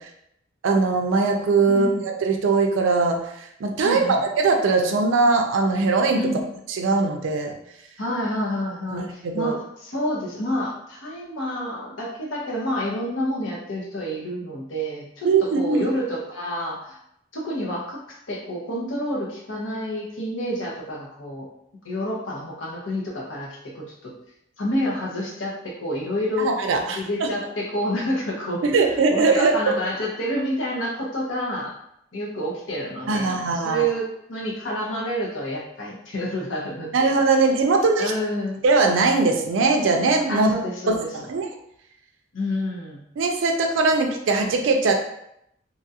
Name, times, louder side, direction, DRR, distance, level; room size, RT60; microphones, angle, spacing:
voice 1, 0.6-3.2 3.6-4.1 4.4-6.2 6.8-7.5 8.9-9.6 15.2-15.8 26.4-27.3 28.6-29.5 33.1-33.8 36.9-38.1 38.6-40.6 40.9-41.5 43.2-44.9, right 3 dB, 80° right, 3 dB, 0.4 m, -20 dB
voice 2, 1.7-2.0 3.8-4.2 6.2-6.5 8.0-17.0 17.3-21.5 21.8-24.1 24.6-26.5 26.9-28.6 28.9-31.7 32.1-37.1 38.0-38.6 40.3-41.1 42.3-43.0, equal, 85° left, -2 dB, 0.8 m, -29 dB
2.9 x 2.4 x 2.7 m, 0.76 s
head